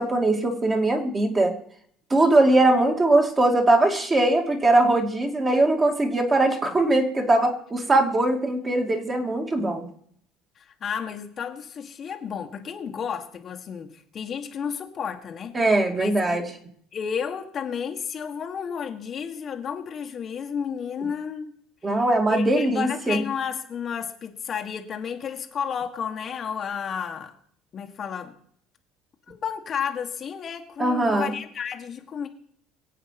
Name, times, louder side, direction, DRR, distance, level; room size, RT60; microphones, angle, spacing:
voice 1, 0.0-1.5 2.1-9.9 15.5-16.4 21.8-23.2 30.8-31.3, right 2 dB, 20° right, 3 dB, 2.7 m, -21 dB
voice 2, 10.6-15.5 15.9-16.4 16.9-21.5 21.9-22.0 22.3-27.3 27.7-28.3 29.3-32.3, left 7 dB, 35° left, 4 dB, 1.6 m, -32 dB
22.5 x 8.4 x 5.9 m, 0.64 s
cardioid pair, 130°, 0 cm